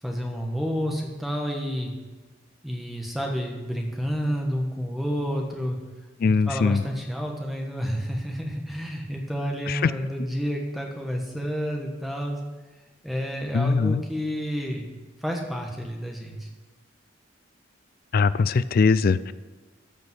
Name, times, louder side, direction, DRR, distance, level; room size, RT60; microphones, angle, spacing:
voice 1, 0.0-1.9 2.6-5.8 6.2-12.4 13.0-14.9 15.2-16.5, equal, ahead, 1 dB, 1.3 m, -30 dB
voice 2, 6.2-6.8 9.7-9.9 13.5-14.0 18.1-19.3, left 4 dB, 50° left, 16 dB, 0.3 m, -21 dB
13.5 x 5.3 x 6.1 m, 1.2 s
head